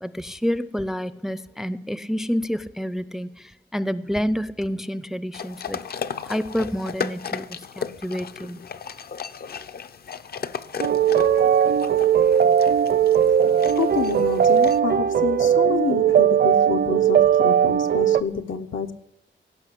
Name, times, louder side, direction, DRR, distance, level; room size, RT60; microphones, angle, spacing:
voice 1, 0.0-6.0 6.2-8.6, equal, ahead, 0.4 m, -28 dB
sound 1, 5.3-14.8, left 6 dB, 50° left, 0.6 m, -35 dB
sound 2, 10.8-18.2, right 9 dB, 55° right, 0.6 m, -18 dB
voice 2, 13.8-18.9, left 7 dB, 80° left, 1.2 m, -28 dB
17.5 x 6.0 x 9.9 m
wide cardioid pair, 150°, 20 cm